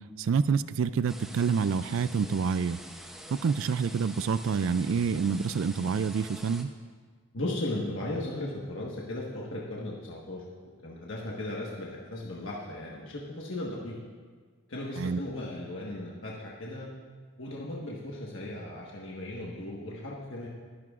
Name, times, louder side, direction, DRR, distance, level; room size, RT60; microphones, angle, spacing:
voice 1, 0.2-2.8 3.3-6.7 15.0-15.2, right 5 dB, 60° right, 14 dB, 0.3 m, -27 dB
sound 1, 1.1-6.6, equal, ahead, 0.7 m, -46 dB
voice 2, 7.3-14.0 14.7-16.9 17.4-20.5, left 1 dB, 60° left, -4 dB, 1.4 m, -36 dB
21.5 x 10.5 x 2.5 m, 1.6 s
head